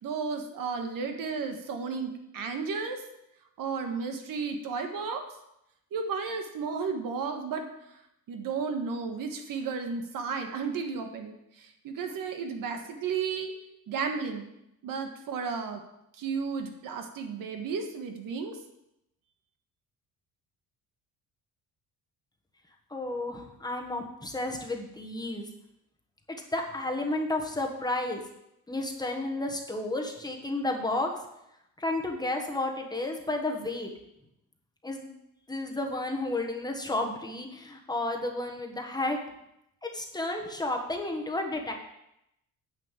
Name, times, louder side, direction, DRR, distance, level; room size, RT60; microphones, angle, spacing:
voice 1, 0.0-3.0 3.6-5.2 5.9-7.7 8.3-13.5 13.9-14.5 14.8-15.8 16.2-18.6, right 5 dB, 65° right, 5 dB, 1.6 m, -33 dB
voice 2, 22.9-25.5 26.5-28.2 28.7-31.2 31.8-33.9 34.8-35.1 35.5-39.2 39.8-41.8, left 2 dB, 10° left, 2 dB, 1.3 m, -32 dB
9.7 x 5.6 x 7.5 m, 0.83 s
cardioid pair, 135°, 35 cm